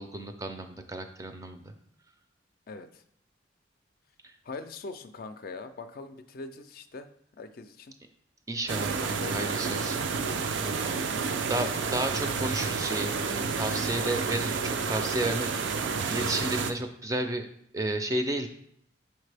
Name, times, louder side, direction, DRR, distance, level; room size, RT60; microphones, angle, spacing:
voice 1, 0.0-1.7 8.5-10.0 10.6-11.0 11.5-17.5 17.7-18.5, right 1 dB, 15° right, 6 dB, 0.4 m, -32 dB
voice 2, 2.7-3.0 4.4-7.1 7.4-7.9 8.9-9.5 11.2-11.6, left 3 dB, 50° left, 8 dB, 0.4 m, -42 dB
sound 1, 8.7-16.7, right 5 dB, 80° right, 0.4 m, -30 dB
6.5 x 4.4 x 3.3 m, 0.69 s
head